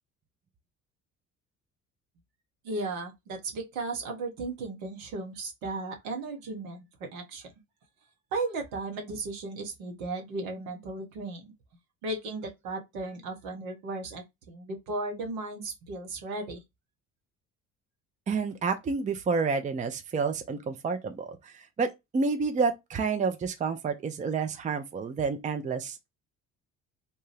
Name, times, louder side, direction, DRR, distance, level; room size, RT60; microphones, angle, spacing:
voice 1, 2.6-7.5 8.3-11.5 12.0-16.6, right 3 dB, 75° right, 1.0 m, -35 dB
voice 2, 18.3-26.1, right 5 dB, 20° right, 0.5 m, -29 dB
2.8 x 2.2 x 3.2 m
hypercardioid pair, 55°, 42 cm